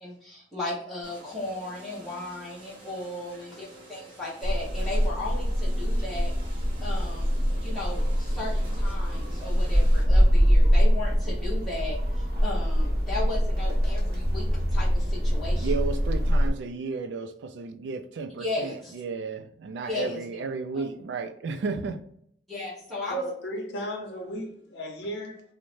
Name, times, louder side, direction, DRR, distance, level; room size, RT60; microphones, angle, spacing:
voice 1, 0.0-7.3 7.6-15.7 18.4-18.9 19.9-20.2 20.7-20.8 22.5-23.2, left 2 dB, ahead, 0.8 m, -36 dB
sound 1, 1.0-10.0, right 2 dB, 30° right, 0.9 m, -49 dB
sound 2, 4.4-16.5, equal, 55° right, 0.7 m, -24 dB
voice 2, 15.6-22.0, right 4 dB, 85° right, 0.3 m, -33 dB
voice 3, 23.1-25.4, right 1 dB, 80° left, 0.6 m, -34 dB
2.6 x 2.1 x 3.1 m
head